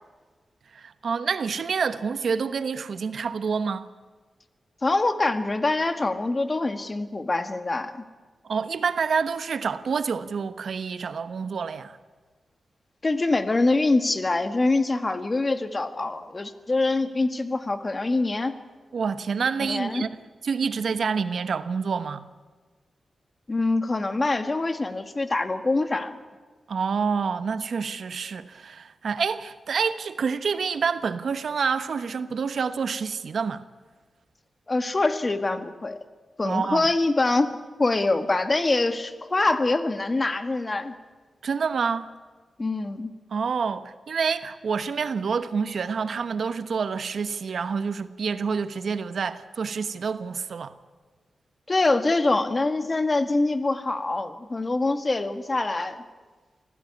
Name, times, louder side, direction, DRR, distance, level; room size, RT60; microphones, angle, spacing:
voice 1, 0.7-3.9 8.4-12.0 18.9-20.2 20.4-22.3 26.7-33.6 36.4-36.9 41.4-42.1 43.3-50.7, right 5 dB, 75° right, 1.1 m, -27 dB
voice 2, 4.8-8.0 13.0-18.5 19.7-20.0 23.5-26.2 34.7-36.0 36.4-40.9 42.6-43.1 51.7-56.0, left 2 dB, 35° left, 1.8 m, -24 dB
25.5 x 16.0 x 9.7 m
cardioid pair, 75°, 0 cm